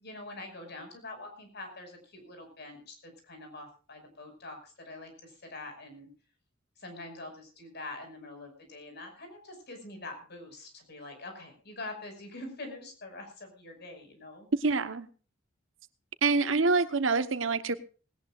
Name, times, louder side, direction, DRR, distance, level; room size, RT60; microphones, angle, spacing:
voice 1, 0.0-6.1 6.8-14.5, left 2 dB, 55° left, 5 dB, 5.7 m, -45 dB
voice 2, 14.5-15.1 16.2-17.8, right 4 dB, 70° right, 11 dB, 1.1 m, -26 dB
19.5 x 18.0 x 2.5 m, 0.36 s
head